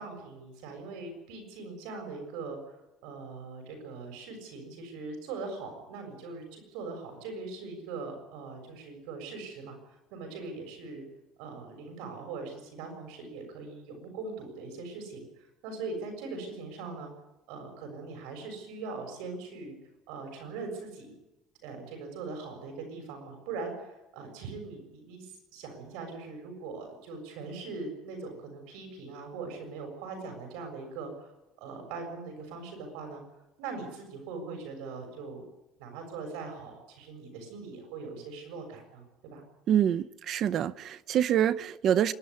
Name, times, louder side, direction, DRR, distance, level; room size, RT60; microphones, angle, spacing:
voice 1, 0.0-2.6 3.0-9.8 10.1-11.0 11.4-17.1 17.5-19.8 20.1-21.1 21.6-33.2 33.6-35.5 35.8-39.0 39.3-39.4, right 4 dB, 85° right, 6.9 m, -41 dB
voice 2, 39.7-42.1, right 10 dB, 45° right, 0.7 m, -26 dB
25.5 x 11.5 x 9.8 m
cardioid pair, 140°, 0 cm